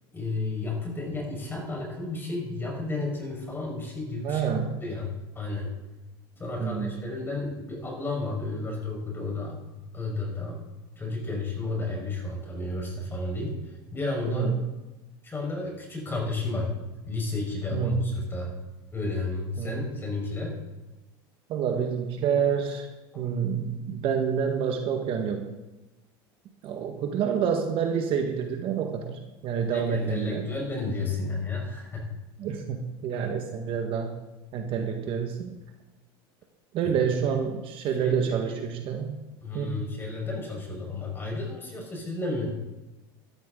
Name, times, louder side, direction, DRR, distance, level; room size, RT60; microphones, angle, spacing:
voice 1, 0.1-4.4 4.8-5.1 5.4-5.7 6.4-9.6 9.9-10.6 11.0-13.6 13.9-14.5 15.2-16.7 17.0-18.5 18.9-20.6 23.1-23.2 29.7-32.1 36.8-37.1 38.0-38.6 39.4-42.5, left 3 dB, 15° left, -1 dB, 5.2 m, -32 dB
voice 2, 4.2-4.8 6.6-6.9 14.3-14.6 17.7-18.1 19.6-19.8 21.5-22.9 23.1-25.5 26.6-30.5 32.4-34.1 34.5-35.5 36.7-39.2 39.5-39.8, right 7 dB, 45° right, 4 dB, 1.6 m, -28 dB
14.0 x 13.0 x 3.9 m, 1.0 s
supercardioid pair, 125°, 13 cm